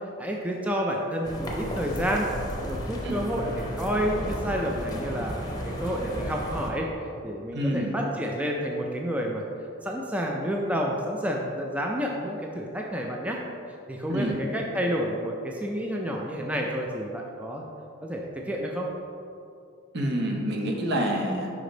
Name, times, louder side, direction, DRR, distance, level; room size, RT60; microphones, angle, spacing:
voice 1, 0.2-2.3 2.7-6.9 7.2-9.4 9.8-13.4 13.9-17.6 18.0-18.9, equal, 5° right, -1 dB, 0.4 m, -29 dB
sound 1, 1.2-6.7, equal, 20° left, 0.8 m, -33 dB
voice 2, 7.5-7.9 14.1-14.4 19.9-21.5, equal, 60° right, 1 dB, 0.8 m, -27 dB
5.2 x 4.9 x 3.8 m, 2.6 s
head